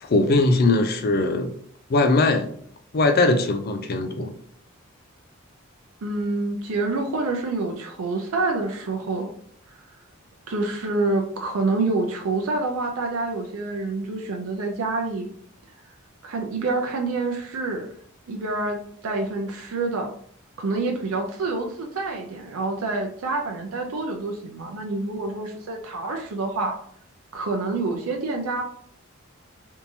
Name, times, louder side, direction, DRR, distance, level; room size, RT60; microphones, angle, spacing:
voice 1, 0.0-1.5 1.9-2.5 2.9-4.3, left 2 dB, 45° left, 0.4 m, -20 dB
voice 2, 6.0-9.3 9.7-9.8 10.5-15.3 16.2-17.9 18.3-20.1 20.6-26.8 27.3-28.6, right 3 dB, 90° right, 0.5 m, -27 dB
3.5 x 2.9 x 2.6 m
head